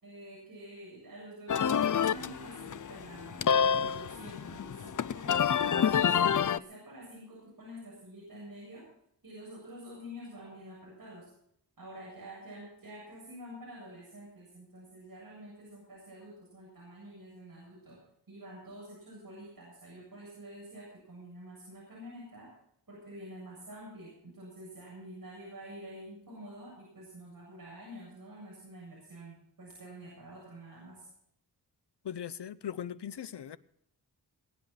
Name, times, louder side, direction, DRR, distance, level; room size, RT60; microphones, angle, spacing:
voice 1, 0.0-8.8 9.2-11.3 11.8-18.0 18.3-22.5 22.9-31.1, right 1 dB, 55° right, 7.8 m, -48 dB
sound 1, 1.5-6.6, left 7 dB, 50° left, 0.6 m, -28 dB
voice 2, 32.0-33.6, left 9 dB, 75° left, 0.9 m, -39 dB
22.0 x 10.5 x 4.2 m
wide cardioid pair, 90°, 41 cm